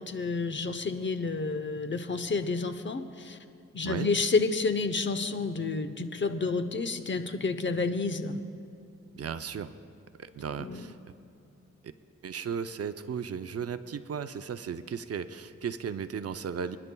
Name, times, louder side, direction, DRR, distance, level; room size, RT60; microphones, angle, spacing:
voice 1, 0.0-3.4 3.7-8.4 10.6-10.8, left 4 dB, 40° left, 9 dB, 0.8 m, -30 dB
voice 2, 9.1-9.7 10.2-11.0 11.8-11.9 12.2-16.8, right 7 dB, 55° right, 10 dB, 0.6 m, -35 dB
28.5 x 11.0 x 2.3 m, 2.5 s
cardioid pair, 85°, 29 cm